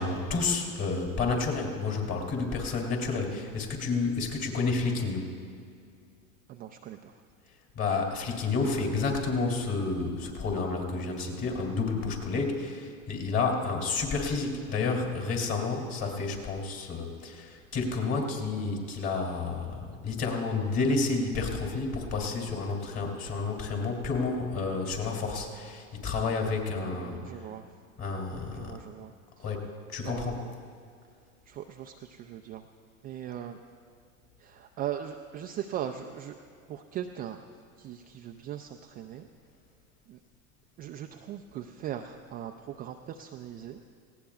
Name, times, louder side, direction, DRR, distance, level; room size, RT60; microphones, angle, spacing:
voice 1, 0.0-5.3 7.7-27.5 28.0-28.8 29.4-30.4, left 4 dB, 35° left, 1 dB, 3.1 m, -30 dB
voice 2, 6.5-7.2 26.8-27.7 28.5-29.5 30.0-30.5 31.5-32.6 33.0-33.6 34.4-36.4 36.7-37.5 37.8-39.3 40.1-40.2 40.8-43.8, right 10 dB, 25° right, 4 dB, 0.3 m, -39 dB
18.5 x 16.5 x 2.4 m, 2.3 s
hypercardioid pair, 100°, 41 cm